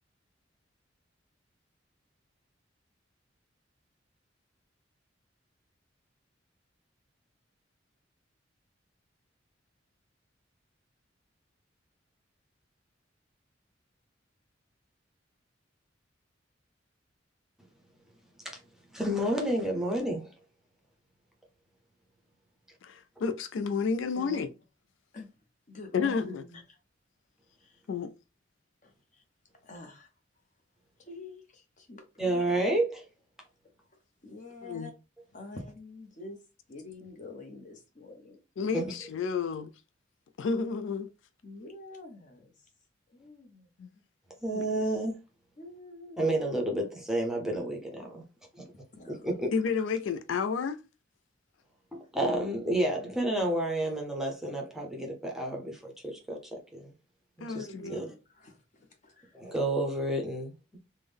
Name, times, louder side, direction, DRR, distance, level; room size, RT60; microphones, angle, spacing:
voice 1, 18.9-20.3 32.2-33.1 38.7-38.9 44.4-45.2 46.2-48.2 49.1-49.5 51.9-56.4 56.7-56.9 57.4-57.6 57.9-58.0 59.3-60.8, right 1 dB, ahead, 0.6 m, -30 dB
voice 2, 22.8-24.5 25.9-26.4 27.9-28.1 34.6-34.9 38.6-39.7 40.4-41.1 43.8-43.9 44.5-44.6 49.5-50.8 57.4-58.0, left 5 dB, 75° left, 0.3 m, -31 dB
voice 3, 25.7-26.8 27.6-27.7 28.8-29.2 29.6-30.1 31.0-32.4 34.2-34.9 35.3-36.4 36.7-38.4 41.4-42.5 43.1-43.7 45.6-46.3 48.9-49.3 57.5-59.5, left 2 dB, 40° left, 0.8 m, -46 dB
3.5 x 2.1 x 3.3 m
head